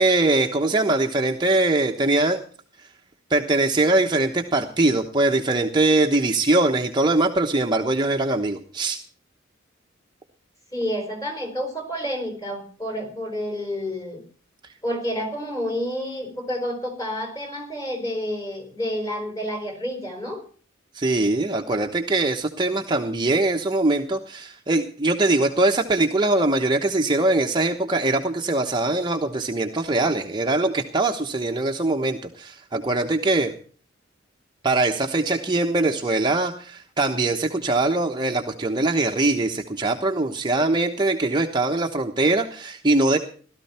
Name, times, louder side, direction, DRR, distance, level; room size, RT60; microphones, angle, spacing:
voice 1, 0.0-2.4 3.3-9.0 20.9-33.5 34.6-43.2, right 2 dB, 20° right, 3 dB, 1.1 m, -22 dB
voice 2, 10.7-14.2 14.8-20.4, equal, 15° left, 4 dB, 4.8 m, -29 dB
17.0 x 13.0 x 4.4 m, 0.43 s
head